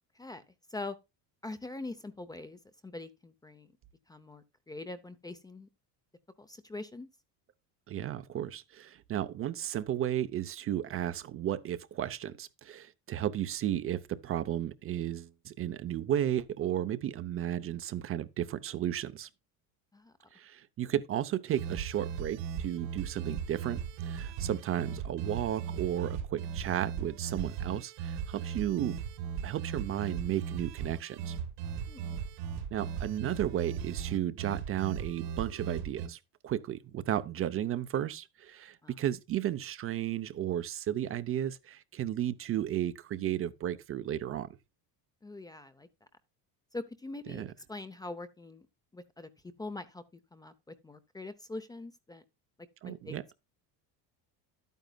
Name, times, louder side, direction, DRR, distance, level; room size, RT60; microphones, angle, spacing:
voice 1, 1.4-3.7 4.1-5.7 6.4-7.1 19.9-20.1 31.9-32.2 38.8-38.9 45.2-46.1 46.7-48.7 48.9-49.3 49.6-50.0 50.3-52.2 52.8-53.2, left 2 dB, 10° left, 0.5 m, -43 dB
voice 2, 7.9-19.3 20.3-29.0 29.4-31.4 32.7-44.5 47.3-47.5 52.8-53.2, right 11 dB, 35° right, 0.6 m, -34 dB
sound 1, 21.5-36.1, right 7 dB, 80° right, 2.4 m, -38 dB
12.0 x 9.2 x 2.2 m
cardioid pair, 155°, 40 cm